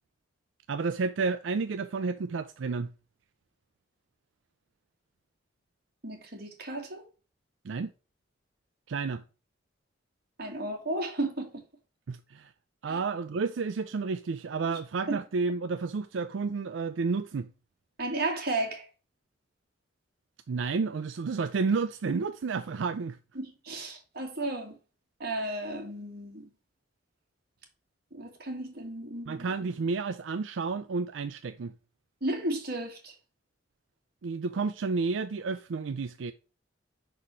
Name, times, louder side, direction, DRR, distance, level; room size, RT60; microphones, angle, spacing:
voice 1, 0.7-2.9 7.6-7.9 8.9-9.2 12.1-12.5 12.8-17.5 20.5-23.2 29.3-31.7 34.2-36.3, right 4 dB, 90° right, 0.4 m, -31 dB
voice 2, 6.0-7.0 10.4-11.6 12.9-13.0 14.7-14.8 15.1-15.2 18.0-18.9 23.4-24.7 25.2-26.5 28.1-29.5 32.2-33.1, right 2 dB, 55° right, 2.0 m, -34 dB
5.5 x 4.2 x 6.1 m
head